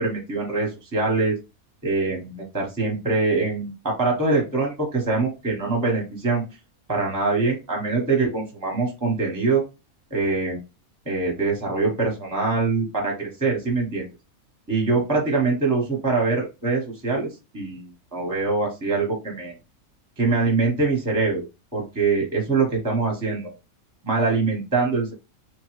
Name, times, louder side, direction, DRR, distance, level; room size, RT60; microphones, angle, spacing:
voice 1, 0.0-1.4 1.8-6.4 6.9-9.6 10.1-10.6 11.0-14.1 14.7-17.3 17.5-19.5 20.2-21.4 21.7-23.5 24.0-25.1, right 3 dB, 15° right, -2 dB, 0.8 m, -23 dB
3.1 x 2.2 x 3.0 m, 0.28 s
omnidirectional pair, 1.5 m